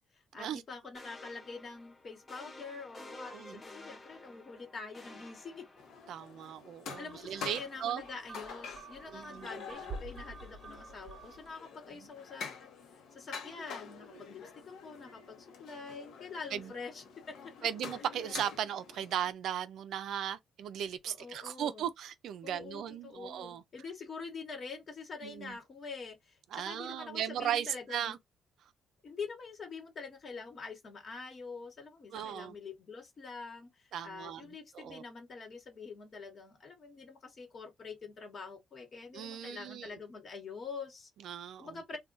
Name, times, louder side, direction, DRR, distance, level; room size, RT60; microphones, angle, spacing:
voice 1, 0.3-5.6 7.0-12.7 13.1-17.5 21.1-21.8 22.4-28.2 29.0-41.1 41.6-42.0, left 4 dB, 50° left, 1.1 m, -45 dB
sound 1, 0.9-6.3, left 2 dB, 25° left, 0.9 m, -51 dB
sound 2, 5.8-19.3, left 6 dB, 80° left, 0.7 m, -47 dB
voice 2, 6.1-8.0 9.1-9.5 16.5-16.7 17.6-23.6 25.2-25.6 26.5-28.2 32.1-32.6 33.9-34.5 34.7-35.0 39.1-39.9 41.2-42.0, right 10 dB, 75° right, 0.3 m, -37 dB
sound 3, 6.9-11.6, right 4 dB, 45° right, 0.9 m, -48 dB
2.4 x 2.2 x 3.8 m
cardioid pair, 90°, 0 cm